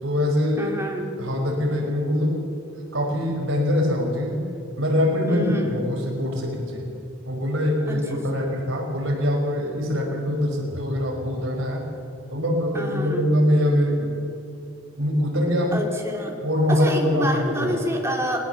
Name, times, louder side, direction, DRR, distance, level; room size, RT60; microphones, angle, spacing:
voice 1, 0.0-0.7 1.2-2.4 2.9-4.4 4.8-6.9 7.3-11.8 12.3-14.1 15.0-15.8 16.4-17.8, left 1 dB, 70° right, 1 dB, 5.0 m, -23 dB
voice 2, 0.6-1.1 5.3-5.8 7.9-8.0 12.7-13.3 15.7-16.4 16.7-18.4, equal, 15° right, 1 dB, 2.9 m, -27 dB
20.5 x 19.5 x 7.1 m, 2.6 s
head